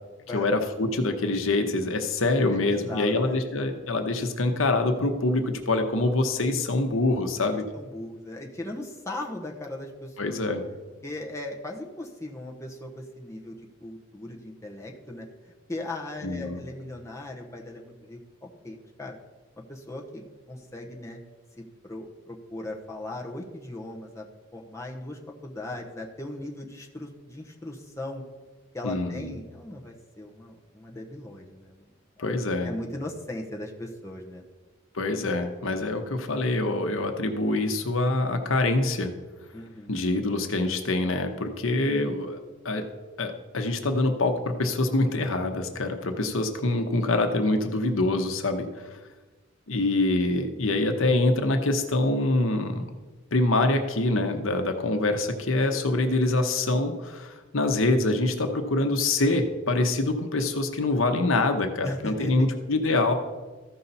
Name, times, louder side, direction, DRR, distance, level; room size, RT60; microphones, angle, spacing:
voice 1, 0.3-7.6 10.2-10.6 16.2-16.6 28.8-29.3 32.2-32.7 34.9-39.1 39.9-42.4 42.6-42.8 43.2-48.7 49.7-52.8 53.3-63.1, left 2 dB, 85° left, 6 dB, 0.9 m, -25 dB
voice 2, 2.5-3.4 7.7-10.5 11.0-15.3 15.7-19.2 19.7-21.2 21.6-24.2 24.5-28.2 28.7-31.9 32.2-32.3 32.6-34.4 39.5-40.0 49.7-49.8 61.8-62.5, left 1 dB, 15° left, -1 dB, 0.9 m, -38 dB
14.5 x 5.6 x 4.1 m, 1.3 s
head